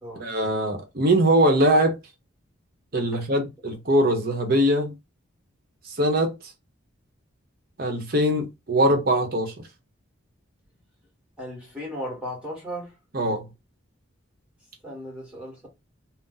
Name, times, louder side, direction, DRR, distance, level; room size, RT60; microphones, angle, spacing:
voice 1, 0.2-2.0 2.9-5.0 6.0-6.4 7.8-9.5 13.1-13.5, right 1 dB, 45° right, 0.8 m, -22 dB
voice 2, 3.1-3.5 11.4-13.0 14.8-15.7, equal, 5° right, 1.2 m, -36 dB
2.6 x 2.0 x 3.8 m
head